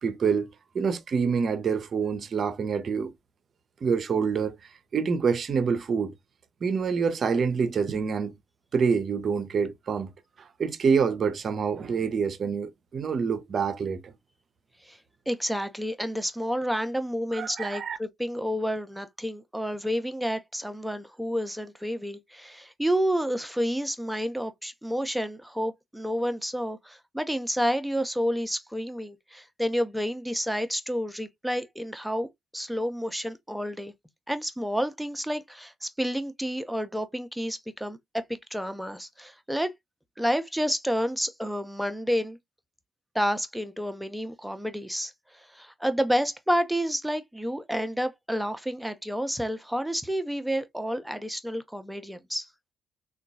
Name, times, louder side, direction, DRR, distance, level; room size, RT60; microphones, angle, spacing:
voice 1, 0.0-0.5 0.7-3.1 3.8-4.6 4.9-6.1 6.6-8.3 8.7-10.1 10.6-14.0 17.3-18.0, right 6 dB, 50° right, 0.5 m, -26 dB
voice 2, 15.3-32.3 32.5-33.9 34.3-39.7 40.2-42.4 43.1-52.5, equal, 5° right, 0.6 m, -30 dB
3.7 x 2.2 x 2.6 m
hypercardioid pair, 45°, 0 cm